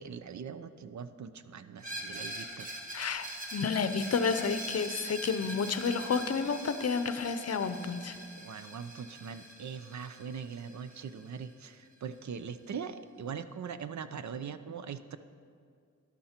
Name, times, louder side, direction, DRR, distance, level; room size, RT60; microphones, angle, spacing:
voice 1, 0.0-3.0 8.4-15.2, right 6 dB, 65° right, 12 dB, 0.6 m, -41 dB
Screech, 1.8-11.4, right 1 dB, 25° right, 1.5 m, -43 dB
voice 2, 2.9-8.2, left 5 dB, 55° left, 11 dB, 0.6 m, -31 dB
12.5 x 11.5 x 4.4 m, 2.3 s
wide cardioid pair, 160°, 30 cm